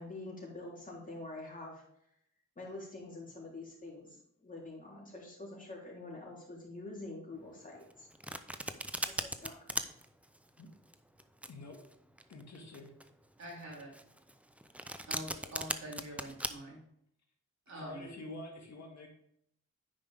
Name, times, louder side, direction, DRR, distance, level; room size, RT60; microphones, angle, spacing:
voice 1, 0.0-1.8 2.6-4.2 4.4-8.1 8.5-8.6 9.0-9.8, left 2 dB, 25° left, -4 dB, 3.4 m, -46 dB
Domestic sounds home sounds, 7.8-16.5, right 1 dB, 5° right, 0.6 m, -39 dB
voice 2, 11.5-11.8 12.3-12.9 17.7-19.1, left 2 dB, 60° left, 1 dB, 1.9 m, -47 dB
voice 3, 13.4-13.9 15.1-16.8 17.7-18.1, right 1 dB, 60° right, -3 dB, 3.5 m, -45 dB
9.5 x 5.3 x 3.5 m, 0.71 s
cardioid pair, 75°, 31 cm